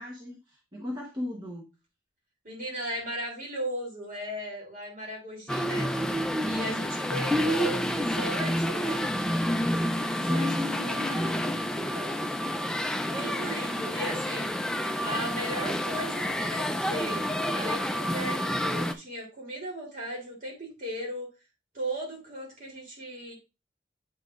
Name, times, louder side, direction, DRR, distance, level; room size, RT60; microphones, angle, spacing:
voice 1, 0.0-1.7 10.1-11.5, left 2 dB, 25° right, -2 dB, 1.0 m, -36 dB
voice 2, 2.4-5.9 6.4-9.1 10.0-11.5 11.8-12.2 13.0-14.5 15.0-17.2 17.5-21.3 21.7-23.3, equal, 45° right, -2 dB, 3.0 m, -37 dB
sound 1, 5.5-18.9, equal, 5° left, 0.4 m, -29 dB
8.2 x 5.7 x 2.4 m, 0.28 s
head